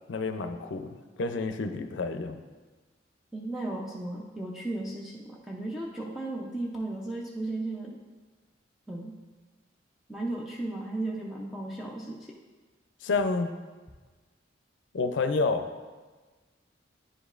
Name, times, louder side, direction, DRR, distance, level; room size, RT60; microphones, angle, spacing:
voice 1, 0.1-2.4 13.0-13.5 14.9-15.7, left 3 dB, 70° left, 8 dB, 0.5 m, -29 dB
voice 2, 3.3-8.0 8.9-9.1 10.1-12.3, right 2 dB, ahead, -4 dB, 0.5 m, -35 dB
9.8 x 5.1 x 2.4 m, 1.4 s
head